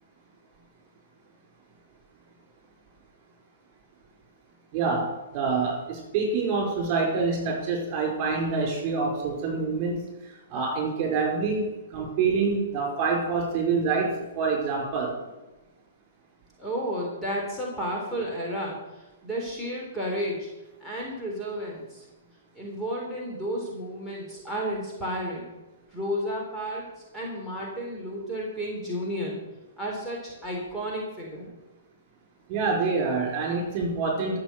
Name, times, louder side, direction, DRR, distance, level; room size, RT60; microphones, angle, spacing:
voice 1, 4.7-10.1 10.5-15.1 32.5-34.4, right 4 dB, 35° right, 1 dB, 5.0 m, -26 dB
voice 2, 16.6-20.5 20.8-22.1 22.6-25.6 25.9-29.4 29.8-31.5, equal, 5° left, -5 dB, 3.6 m, -32 dB
13.0 x 7.0 x 6.9 m, 1.0 s
figure-of-eight pair, 115°, 0 cm